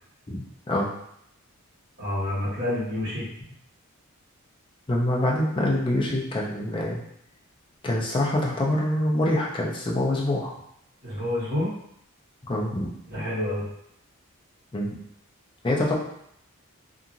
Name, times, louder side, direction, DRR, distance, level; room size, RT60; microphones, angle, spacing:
voice 1, 0.3-0.9 4.9-7.0 7.8-10.5 12.5-12.9 14.7-14.9 15.6-15.9, left 1 dB, 25° left, -3 dB, 0.5 m, -25 dB
voice 2, 2.0-3.3 11.0-11.7 13.1-13.6, left 1 dB, 50° right, -10 dB, 1.4 m, -28 dB
2.8 x 2.5 x 2.5 m, 0.73 s
head